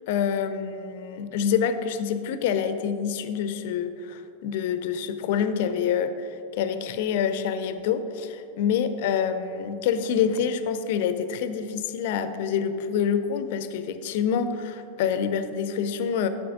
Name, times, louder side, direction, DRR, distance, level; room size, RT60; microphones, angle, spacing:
voice 1, 0.1-16.3, left 7 dB, 50° left, 10 dB, 0.5 m, -27 dB
12.5 x 5.8 x 2.5 m, 2.6 s
figure-of-eight pair, 90°, 0 cm